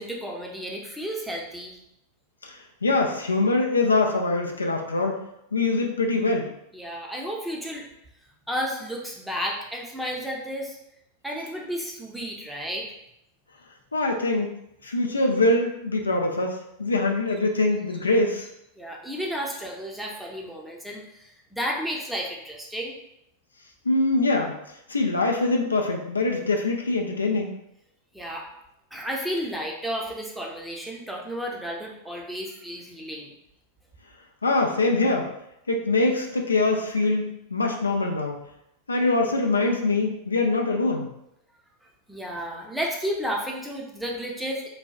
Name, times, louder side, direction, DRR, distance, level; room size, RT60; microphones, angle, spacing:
voice 1, 0.0-1.8 6.7-7.9 8.5-10.8 11.2-12.9 18.8-22.9 28.1-28.5 28.9-33.3 42.1-44.7, equal, ahead, -2 dB, 0.6 m, -32 dB
voice 2, 2.4-5.2 5.5-6.5 13.9-14.5 14.8-18.5 23.9-24.6 24.9-27.5 34.4-35.3 35.7-38.4 38.9-41.1, left 2 dB, 75° left, 2 dB, 0.4 m, -23 dB
4.0 x 2.2 x 2.3 m, 0.80 s
figure-of-eight pair, 90°, 0 cm